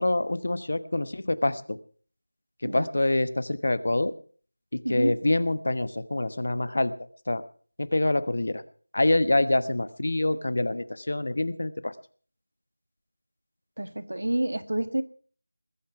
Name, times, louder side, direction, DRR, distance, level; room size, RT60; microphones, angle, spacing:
voice 1, 0.0-1.8 2.6-4.1 4.7-6.9 7.3-7.4 7.8-8.6 8.9-12.0, left 2 dB, 50° left, 14 dB, 1.2 m, -26 dB
voice 2, 4.8-5.2 13.8-15.0, right 1 dB, 80° right, 11 dB, 1.8 m, -28 dB
21.0 x 8.5 x 5.9 m, 0.44 s
figure-of-eight pair, 180°, 0 cm